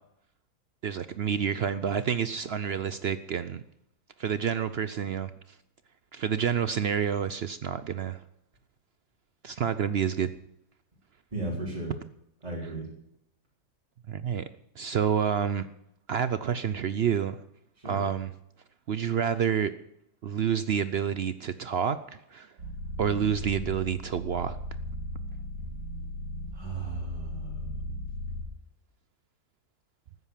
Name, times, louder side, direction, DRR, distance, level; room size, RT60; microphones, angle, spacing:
voice 1, 0.8-3.6 4.2-5.3 6.1-8.2 9.4-10.3 14.1-14.5 14.8-15.7 16.1-17.4 17.8-18.3 18.9-19.7 20.2-22.0 22.3-22.5 23.0-24.6, right 8 dB, 65° right, 13 dB, 0.6 m, -28 dB
voice 2, 11.3-12.0 12.4-12.9 17.8-18.0 26.5-27.9, right 2 dB, 25° right, -4 dB, 3.6 m, -36 dB
sound 1, 22.6-28.4, left 1 dB, 90° right, 3.9 m, -37 dB
14.0 x 9.7 x 7.4 m, 0.77 s
omnidirectional pair, 1.7 m